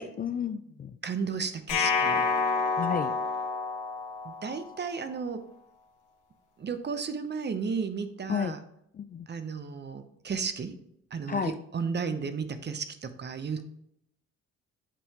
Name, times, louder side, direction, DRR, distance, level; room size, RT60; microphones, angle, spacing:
voice 1, 0.0-1.0 2.8-3.1 8.3-8.6 8.9-9.3 11.3-11.5, left 7 dB, 30° left, 10 dB, 0.3 m, -32 dB
voice 2, 1.0-2.3 4.2-5.4 6.6-8.6 9.3-10.7 11.1-13.6, right 5 dB, 35° right, 10 dB, 0.7 m, -33 dB
sound 1, 1.7-4.8, left 4 dB, 85° left, 1.5 m, -28 dB
8.3 x 5.5 x 2.9 m, 0.74 s
cardioid pair, 90°, 30 cm